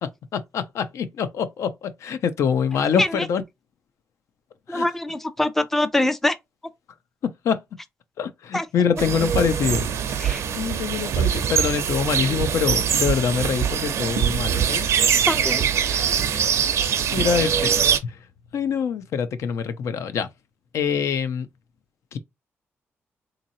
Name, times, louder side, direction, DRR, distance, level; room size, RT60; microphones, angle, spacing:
voice 1, 0.0-3.4 4.7-4.9 7.2-7.6 8.2-10.2 10.5-14.9 17.1-17.7 18.0-18.2 18.5-20.3 20.7-21.5 22.1-22.2, left 7 dB, 80° left, 0.6 m, -25 dB
voice 2, 4.7-6.4 8.5-8.7 10.2-10.4 15.3-16.1, left 1 dB, 5° left, 0.4 m, -24 dB
sound 1, 9.0-18.0, right 8 dB, 75° right, 0.6 m, -23 dB
3.9 x 2.9 x 2.7 m
wide cardioid pair, 170°, 5 cm